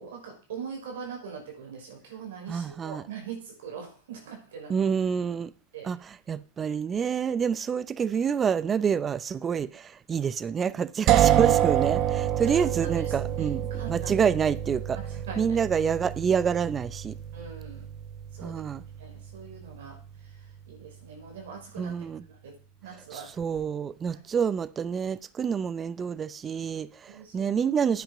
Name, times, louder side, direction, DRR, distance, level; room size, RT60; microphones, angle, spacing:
voice 1, 0.0-4.7 5.7-5.9 12.4-14.1 14.9-15.6 17.3-17.9 18.3-18.6 19.0-22.6 22.8-23.3 24.1-24.2 27.1-27.6, right 6 dB, 75° right, 5.7 m, -42 dB
voice 2, 2.5-3.0 4.7-5.5 5.8-6.0 6.3-13.6 13.9-15.0 15.4-17.2 18.4-18.8 21.8-22.2 23.1-28.0, right 7 dB, 25° right, 0.7 m, -27 dB
sound 1, 11.1-20.8, right 11 dB, 45° right, 1.1 m, -28 dB
10.0 x 9.6 x 5.1 m
hypercardioid pair, 105°, 0 cm